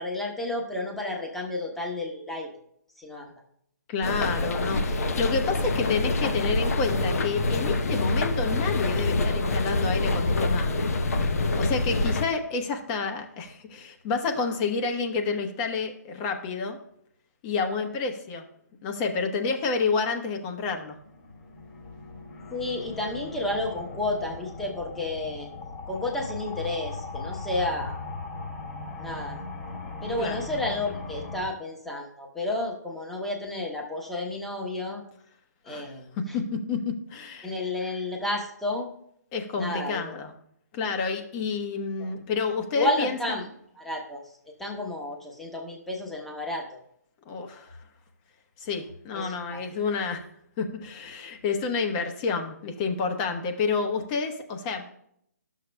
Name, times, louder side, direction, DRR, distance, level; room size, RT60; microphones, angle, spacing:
voice 1, 0.0-2.5 3.0-3.3 22.5-25.5 25.9-28.0 29.0-29.4 30.0-35.0 35.7-36.4 37.4-38.9 39.6-40.1 42.0-42.1 42.7-43.4 43.7-44.2 44.6-46.8 49.1-49.6, left 2 dB, 5° left, -1 dB, 1.1 m, -31 dB
voice 2, 3.9-10.9 11.6-16.8 17.4-18.4 18.8-21.0 30.2-30.4 35.7-35.9 36.3-37.5 39.3-40.3 40.7-43.1 47.3-47.8 48.6-50.2 50.6-54.9, left 4 dB, 25° left, 4 dB, 1.0 m, -29 dB
sound 1, 4.0-12.3, left 2 dB, 60° left, 0.8 m, -26 dB
sound 2, 20.8-31.5, left 3 dB, 45° left, 2.4 m, -38 dB
12.5 x 6.6 x 2.2 m, 0.70 s
figure-of-eight pair, 140°, 9 cm